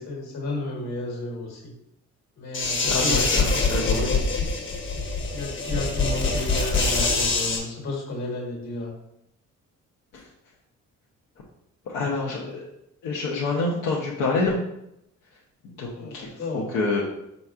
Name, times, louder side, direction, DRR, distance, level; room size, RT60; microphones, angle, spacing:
voice 1, 0.0-1.7 2.4-4.1 5.3-8.9 15.9-16.7, left 2 dB, 65° left, -1 dB, 1.5 m, -32 dB
sound 1, 2.5-7.6, left 3 dB, 40° left, 0.9 m, -24 dB
voice 2, 2.9-4.1 10.1-10.2 11.9-12.7 13.0-14.6 15.6-16.3 16.5-17.0, left 3 dB, 90° left, -5 dB, 0.8 m, -27 dB
4.5 x 4.0 x 2.4 m, 0.82 s
cardioid pair, 90°, 30 cm